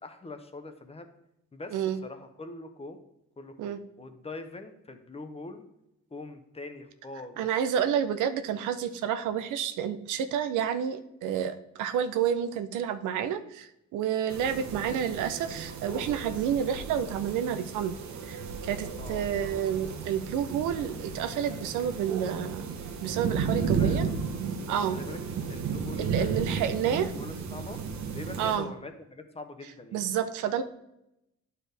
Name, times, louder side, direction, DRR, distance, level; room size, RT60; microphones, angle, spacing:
voice 1, 0.0-1.1 1.5-1.8 2.0-3.0 3.4-5.7 6.1-7.5 14.6-14.7 19.0-19.3 23.5-24.2 24.7-25.2 25.5-26.4 26.9-27.8 28.1-30.0, left 2 dB, 20° left, 7 dB, 0.8 m, -43 dB
voice 2, 7.4-18.0 18.3-22.7 23.0-24.1 24.7-25.0 26.0-27.1 28.4-28.7 29.9-30.6, right 8 dB, 90° right, 10 dB, 0.6 m, -29 dB
sound 1, 14.3-28.6, right 5 dB, 65° right, 1.1 m, -34 dB
9.9 x 4.5 x 3.3 m, 0.85 s
cardioid pair, 90°, 30 cm